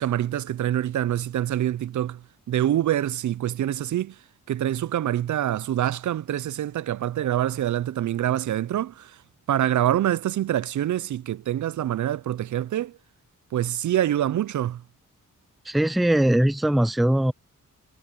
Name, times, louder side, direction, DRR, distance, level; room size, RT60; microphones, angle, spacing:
voice 1, 0.0-2.2 2.5-4.2 4.5-9.2 9.5-13.0 13.5-14.8, right 12 dB, 70° right, 0.4 m, -25 dB
voice 2, 15.7-17.3, right 1 dB, ahead, 0.4 m, -20 dB
wide cardioid pair, 160°, 31 cm